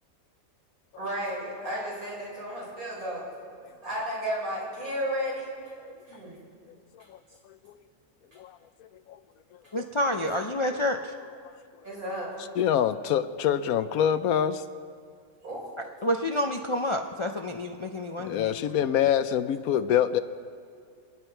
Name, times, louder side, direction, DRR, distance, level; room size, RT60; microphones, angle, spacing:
voice 1, 1.0-3.2 3.8-5.5 6.1-6.4 10.2-10.3 11.8-12.3 15.4-15.7, equal, 90° right, -5 dB, 5.4 m, -33 dB
voice 2, 8.4-9.2 12.6-14.6 17.9-20.2, left 9 dB, 90° left, 12 dB, 1.2 m, -26 dB
voice 3, 9.7-11.1 15.8-18.9, left 1 dB, 45° left, 4 dB, 0.3 m, -29 dB
29.0 x 9.9 x 4.5 m, 2.2 s
omnidirectional pair, 1.5 m